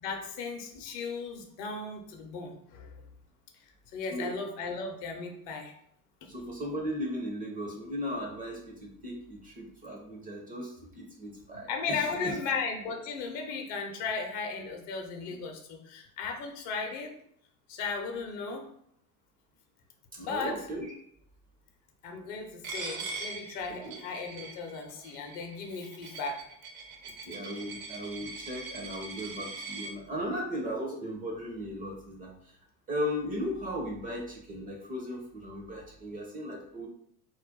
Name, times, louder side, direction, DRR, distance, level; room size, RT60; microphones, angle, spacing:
voice 1, 0.0-2.9 3.9-5.7 6.2-6.3 11.7-17.2 17.7-18.7 20.2-20.7 22.0-26.5, left 4 dB, 45° left, 3 dB, 0.7 m, -36 dB
voice 2, 6.3-12.4 20.1-20.9 23.8-24.0 27.0-32.3 32.9-36.9, equal, 20° right, 0 dB, 0.5 m, -37 dB
Coin (dropping), 22.6-29.9, right 4 dB, 65° right, 0.8 m, -42 dB
2.5 x 2.2 x 3.6 m, 0.68 s
figure-of-eight pair, 75°, 47 cm